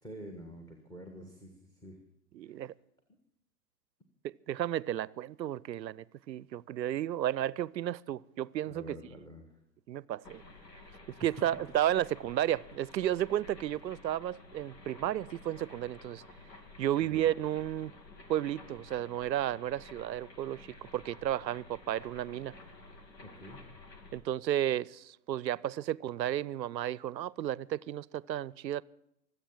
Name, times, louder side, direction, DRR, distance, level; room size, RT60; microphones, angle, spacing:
voice 1, 0.0-2.0 2.4-2.7 8.7-9.6 11.2-11.4 17.0-17.2 23.2-23.6, equal, 5° left, 1.6 m, -48 dB
voice 2, 2.3-2.7 4.2-9.0 9.9-10.4 11.1-16.2 16.8-17.9 18.3-20.7 20.9-22.5 24.1-28.8, right 12 dB, 85° right, 0.6 m, -33 dB
sound 1, 10.2-24.2, left 3 dB, 75° left, 3.0 m, -52 dB
24.0 x 8.1 x 7.4 m
hypercardioid pair, 115°, 50 cm